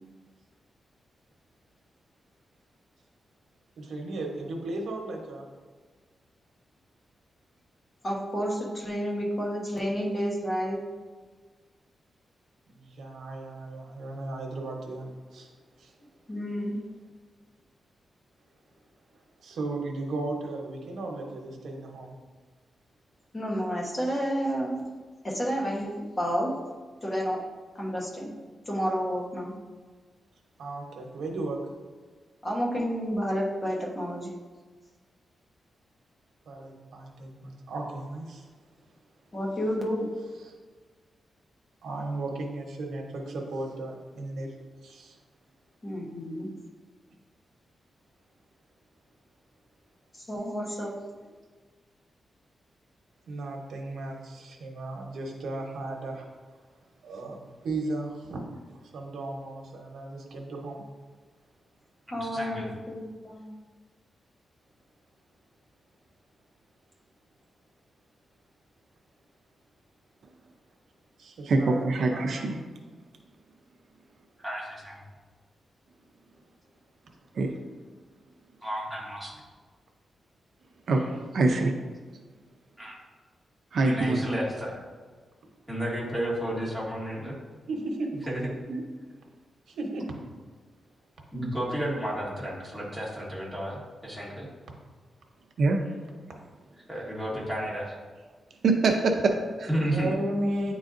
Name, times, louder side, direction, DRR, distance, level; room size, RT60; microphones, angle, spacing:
voice 1, 3.8-5.4 12.7-15.5 15.8-15.9 19.4-22.1 30.6-31.6 36.5-38.5 40.4-40.5 41.8-44.5 44.8-45.2 53.3-56.2 57.0-58.5 58.8-60.8 71.2-72.5 87.7-88.1 89.7-90.1 99.9-100.7, right 2 dB, 80° right, 1 dB, 1.0 m, -35 dB
voice 2, 8.0-10.8 16.3-16.9 23.3-24.9 25.2-25.9 26.2-26.5 27.0-27.4 27.7-28.3 28.7-29.5 32.4-34.3 39.3-40.1 45.8-46.5 50.1-50.9 62.1-63.6, equal, 25° left, -2 dB, 1.1 m, -30 dB
voice 3, 62.2-62.7 74.4-75.0 78.6-79.3 82.8-83.0 83.8-84.8 85.7-87.4 88.3-88.4 91.3-94.5 96.9-98.0 99.7-100.1, right 1 dB, 5° left, -5 dB, 1.7 m, -32 dB
voice 4, 71.5-72.6 77.3-77.5 80.9-81.7 83.7-84.2 88.7-88.8 95.6-95.8 98.6-99.7, right 3 dB, 60° right, 3 dB, 0.5 m, -24 dB
9.6 x 3.9 x 2.6 m, 1.4 s
wide cardioid pair, 140°, 0 cm